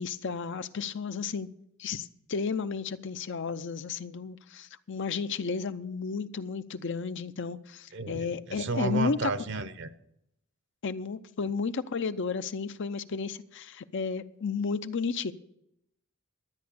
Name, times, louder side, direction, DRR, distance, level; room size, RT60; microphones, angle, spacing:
voice 1, 0.0-1.5 1.8-9.3 10.8-15.3, left 5 dB, 60° left, 0.6 m, -33 dB
voice 2, 7.9-9.9, right 3 dB, 60° right, 0.8 m, -32 dB
12.5 x 9.4 x 6.8 m
head